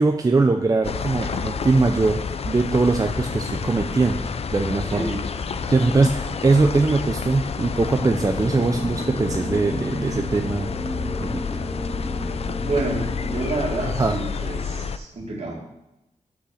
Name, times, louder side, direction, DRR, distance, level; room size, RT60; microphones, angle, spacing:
voice 1, 0.0-2.2 2.4-4.2 4.5-5.1 5.7-10.7 11.2-11.4 14.0-14.1, right 3 dB, 30° right, 4 dB, 0.5 m, -21 dB
sound 1, 0.8-15.0, left 5 dB, 55° left, 0.4 m, -29 dB
voice 2, 4.9-5.3 12.6-15.6, right 2 dB, 55° right, -1 dB, 2.1 m, -28 dB
sound 2, 7.8-13.5, left 1 dB, ahead, 1.9 m, -32 dB
6.2 x 5.7 x 5.7 m, 0.89 s
wide cardioid pair, 110°, 13 cm